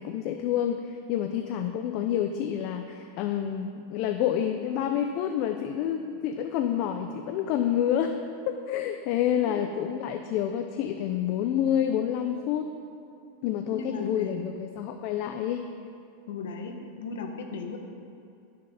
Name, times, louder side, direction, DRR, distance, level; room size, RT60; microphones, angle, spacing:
voice 1, 0.0-8.2 8.5-12.7 13.4-15.7, left 10 dB, 40° left, 6 dB, 0.5 m, -28 dB
voice 2, 13.7-14.5 16.3-17.8, left 4 dB, 85° left, 3 dB, 1.4 m, -36 dB
12.0 x 6.5 x 5.6 m, 2.5 s
supercardioid pair, 165°, 0 cm